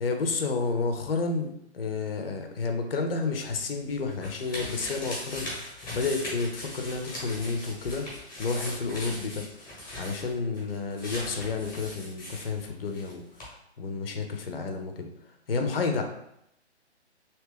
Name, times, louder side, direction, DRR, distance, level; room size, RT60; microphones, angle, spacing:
voice 1, 0.0-8.1 8.4-9.5 10.0-15.1 15.5-16.0, left 4 dB, 55° left, 4 dB, 0.6 m, -31 dB
sound 1, 3.5-13.1 13.4-13.5, left 1 dB, 10° left, 1.0 m, -39 dB
3.0 x 2.8 x 3.4 m, 0.79 s
figure-of-eight pair, 135°, 34 cm